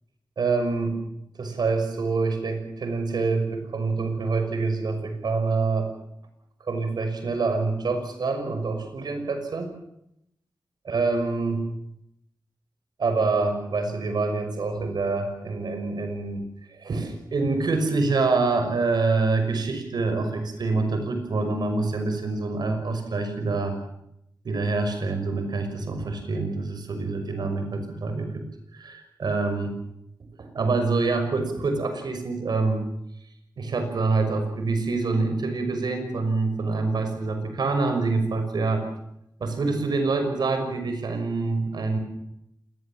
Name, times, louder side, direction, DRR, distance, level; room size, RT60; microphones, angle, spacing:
voice 1, 0.4-1.0 1.4-5.9 6.6-9.7 10.8-11.6 13.0-16.4 16.7-23.8 24.4-28.4 28.7-29.8 30.4-32.8 33.6-38.8 39.4-42.0, right 3 dB, 75° right, 7 dB, 6.1 m, -26 dB
26.5 x 20.5 x 7.5 m, 0.78 s
wide cardioid pair, 90°, 7 cm